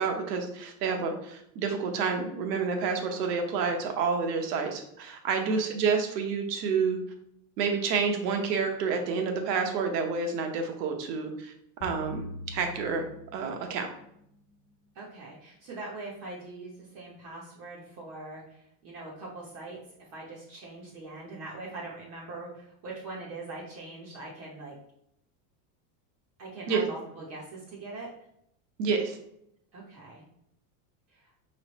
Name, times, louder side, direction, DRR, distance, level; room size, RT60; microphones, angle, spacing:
voice 1, 0.0-7.0 7.6-11.5 11.8-12.2 12.5-13.0 13.3-13.9 26.7-26.8 28.8-29.2, right 5 dB, 80° right, 4 dB, 1.1 m, -29 dB
voice 2, 5.3-5.7 14.9-19.8 20.1-24.8 26.4-28.1 29.7-30.2 31.1-31.3, right 2 dB, 35° right, -4 dB, 0.8 m, -42 dB
sound 1, 11.8-14.2, left 1 dB, 50° left, 1.1 m, -43 dB
5.2 x 3.2 x 3.0 m, 0.74 s
supercardioid pair, 170°, 48 cm